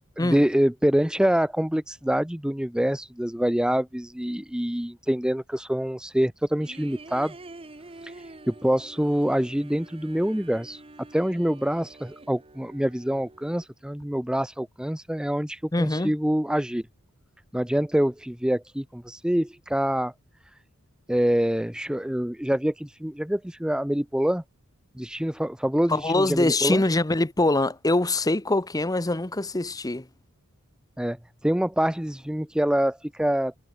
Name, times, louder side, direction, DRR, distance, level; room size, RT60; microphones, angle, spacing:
voice 1, 0.2-7.3 8.0-10.8 11.1-16.8 17.5-20.1 21.1-24.4 25.0-26.8 31.0-31.2 31.4-33.6, equal, 5° right, 0.6 m, -25 dB
sound 1, 6.5-13.7, right 2 dB, 25° right, 1.2 m, -47 dB
voice 2, 15.7-16.1 25.9-30.1, left 2 dB, 15° left, 0.9 m, -24 dB
head